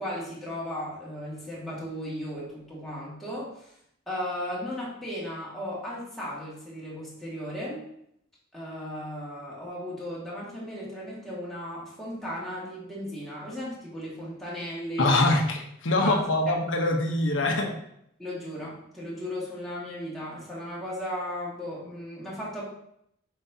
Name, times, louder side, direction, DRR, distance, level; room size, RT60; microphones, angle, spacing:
voice 1, 0.0-3.7 4.1-7.9 8.5-15.2 16.0-16.6 18.2-22.6, equal, ahead, -8 dB, 1.9 m, -36 dB
voice 2, 15.0-17.7, left 2 dB, 80° left, 3 dB, 1.1 m, -24 dB
7.0 x 5.2 x 2.8 m, 0.73 s
head